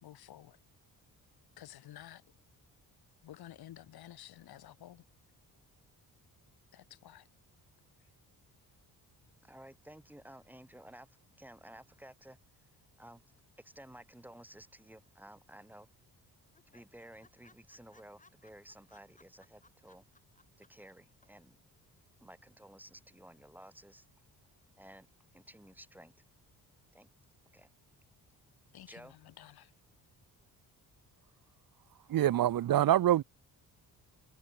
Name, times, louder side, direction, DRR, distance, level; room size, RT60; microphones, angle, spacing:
voice 1, 0.0-0.6 1.6-2.2 3.2-5.0 6.7-7.3 28.7-29.7, left 12 dB, 80° left, 3.5 m, -52 dB
voice 2, 9.4-11.1 11.4-12.4 13.0-13.2 13.6-15.9 16.7-20.0 20.6-21.6 22.2-24.0 24.8-25.1 25.3-26.1 26.9-27.1 27.5-27.7 28.9-29.1, right 1 dB, 5° right, 5.8 m, -54 dB
sound 1, 15.0-15.5 15.8-15.9 16.2-16.3 16.5-20.9 21.2-21.3, left 3 dB, 20° left, 7.7 m, -65 dB
voice 3, 32.1-33.2, right 12 dB, 65° right, 1.1 m, -25 dB
cardioid pair, 105°, 37 cm